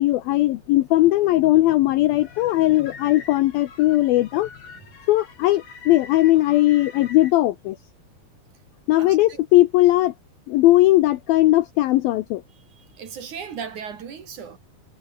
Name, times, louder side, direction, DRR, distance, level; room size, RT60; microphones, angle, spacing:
voice 1, 0.0-4.5 5.1-7.8 8.9-10.1 10.5-12.4, left 16 dB, 80° left, 2.2 m, -18 dB
sound 1, 2.2-7.3, left 5 dB, 45° left, 6.2 m, -44 dB
voice 2, 9.0-9.4 12.7-14.6, right 7 dB, 50° right, 3.3 m, -37 dB
omnidirectional pair, 5.1 m